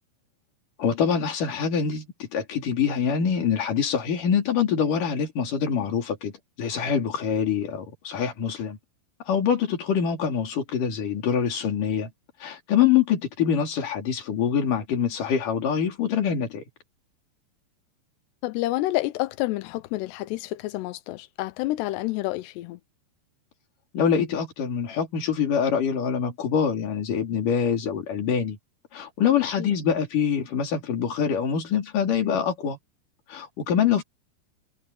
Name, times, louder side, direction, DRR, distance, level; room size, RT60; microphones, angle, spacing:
voice 1, 0.8-6.3 6.6-8.8 9.2-12.1 12.4-16.6 23.9-28.6 28.9-32.8 33.3-34.0, left 7 dB, 45° left, 4.3 m, -25 dB
voice 2, 18.4-22.8 29.6-29.7, left 18 dB, 85° left, 2.5 m, -29 dB
omnidirectional pair, 5.6 m